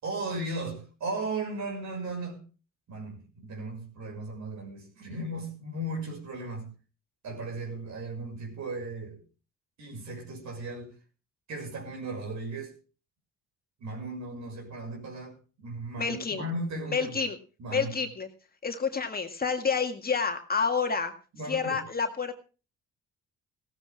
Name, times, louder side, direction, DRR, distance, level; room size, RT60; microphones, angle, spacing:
voice 1, 0.0-2.4 2.9-6.7 7.2-9.2 9.8-10.9 11.5-12.8 13.8-17.2 17.6-18.0 21.3-21.8, right 2 dB, 65° right, 6.5 m, -36 dB
voice 2, 16.0-16.4 16.9-17.4 17.7-18.3 18.6-21.1 21.5-22.3, left 5 dB, 30° left, 2.0 m, -29 dB
17.0 x 13.5 x 3.6 m
cardioid pair, 90°, 30 cm